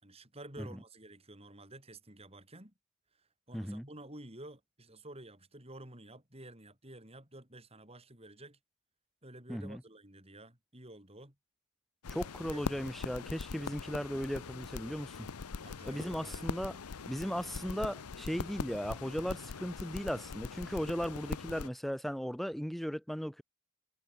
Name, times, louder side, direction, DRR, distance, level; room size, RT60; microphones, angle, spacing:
voice 1, 0.0-2.7 3.2-8.6 9.2-11.3 12.5-12.6 15.6-16.8 18.2-18.3, right 1 dB, 25° right, 4.9 m, -51 dB
voice 2, 3.5-3.8 9.5-9.8 12.1-15.3 15.9-16.8 17.1-23.4, equal, ahead, 0.5 m, -37 dB
sound 1, 12.0-21.7, left 4 dB, 85° left, 0.7 m, -42 dB
head